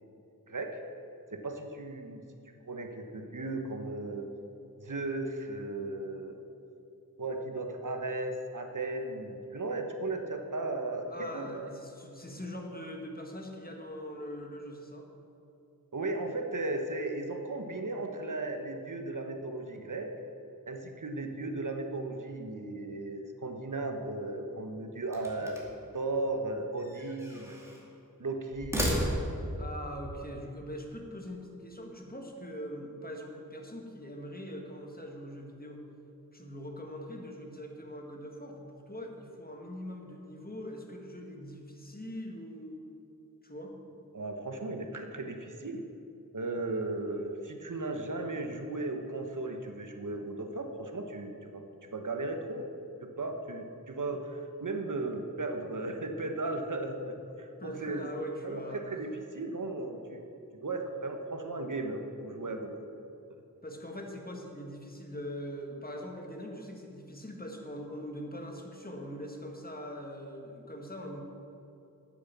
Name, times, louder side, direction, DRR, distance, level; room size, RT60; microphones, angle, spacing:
voice 1, 0.5-0.8 1.3-4.3 4.8-6.4 7.2-11.6 15.9-20.1 20.7-25.6 25.9-27.7 28.2-28.9 44.1-45.8 46.3-52.6 53.0-58.1 58.4-60.2 60.6-62.8 63.3-63.4, right 2 dB, 60° right, 5 dB, 1.2 m, -36 dB
voice 2, 11.1-15.1 19.8-19.9 28.7-29.0 29.6-35.8 36.3-42.8 43.4-43.8 57.6-59.0 63.6-71.2, equal, 25° left, 1 dB, 1.8 m, -42 dB
sound 1, 25.1-25.9 26.8-27.9 28.5-29.6, equal, 5° right, 2.6 m, -34 dB
9.6 x 7.8 x 6.9 m, 2.8 s
wide cardioid pair, 40°, 36 cm